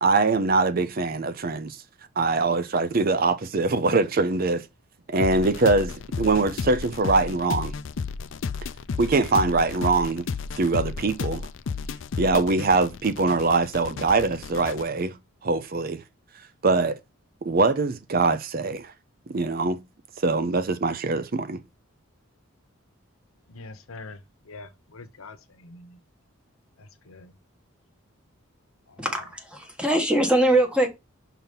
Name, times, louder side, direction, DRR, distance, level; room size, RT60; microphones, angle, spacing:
voice 1, 0.0-1.8 2.2-4.6 5.1-7.7 9.0-10.3 10.6-11.5 12.2-15.2 15.4-16.0 16.6-17.0 17.4-18.9 19.3-19.8 20.2-21.6, right 3 dB, 45° right, 0.5 m, -23 dB
sound 1, 5.2-14.8, left 5 dB, 65° left, 0.4 m, -33 dB
voice 2, 23.5-24.2 24.5-26.0 26.8-27.3 28.9-29.0, left 3 dB, 85° left, 1.0 m, -44 dB
voice 3, 29.0-30.9, right 1 dB, 5° right, 1.4 m, -22 dB
5.8 x 4.0 x 5.3 m
head